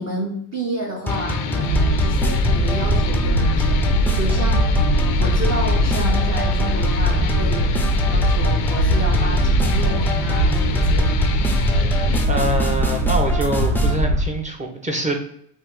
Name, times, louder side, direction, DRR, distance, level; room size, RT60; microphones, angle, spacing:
voice 1, 0.0-4.9 5.2-11.2, right 1 dB, 35° right, -2 dB, 1.0 m, -30 dB
sound 1, 1.1-12.2, left 6 dB, 85° left, 0.6 m, -29 dB
sound 2, 1.1-14.0, left 2 dB, 5° left, 0.5 m, -27 dB
sound 3, 1.7-14.3, right 1 dB, 70° right, 0.9 m, -20 dB
voice 2, 12.3-15.1, right 1 dB, 15° right, 2 dB, 0.8 m, -24 dB
2.8 x 2.5 x 3.7 m, 0.66 s
supercardioid pair, 65°, 48 cm